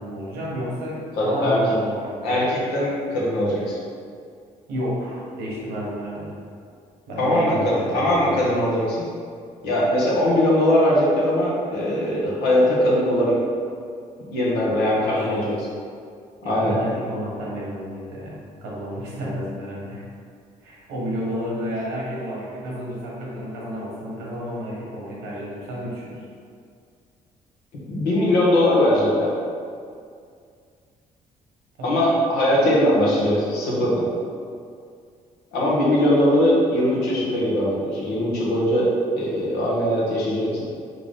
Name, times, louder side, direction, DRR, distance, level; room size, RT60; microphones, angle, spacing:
voice 1, 0.0-2.4 4.7-6.4 7.1-8.4 15.0-15.5 16.4-20.0 20.6-26.2 31.8-32.0 32.5-32.7, equal, 90° right, -5 dB, 1.2 m, -31 dB
voice 2, 1.2-1.6 2.2-3.8 7.2-9.0 9.6-13.4 14.3-15.5 16.4-16.7 27.9-29.3 31.8-34.1 35.5-40.7, left 1 dB, 85° left, -5 dB, 1.2 m, -20 dB
3.8 x 3.6 x 3.6 m, 2.2 s
supercardioid pair, 65°, 16 cm